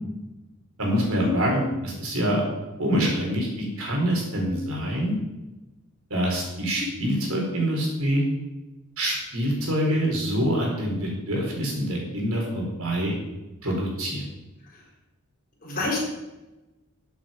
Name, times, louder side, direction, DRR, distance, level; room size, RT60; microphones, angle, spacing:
voice 1, 0.8-2.4 2.8-5.2 6.1-8.2 9.0-13.1 13.6-14.2, equal, 70° right, -2 dB, 4.4 m, -25 dB
voice 2, 15.6-16.0, left 3 dB, 40° left, -2 dB, 4.0 m, -29 dB
13.5 x 8.1 x 5.2 m, 1.0 s
head